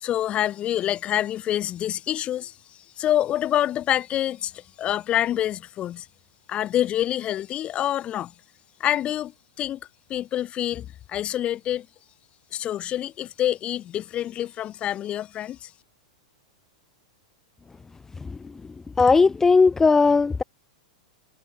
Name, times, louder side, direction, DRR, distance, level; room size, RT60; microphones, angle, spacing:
voice 1, 0.0-2.5 3.0-6.1 6.5-8.3 8.8-9.3 9.6-9.8 10.1-11.9 12.5-15.7, left 12 dB, 30° left, 2.3 m, -26 dB
voice 2, 19.0-20.4, left 4 dB, 10° left, 0.6 m, -17 dB
hypercardioid pair, 120°, 4 cm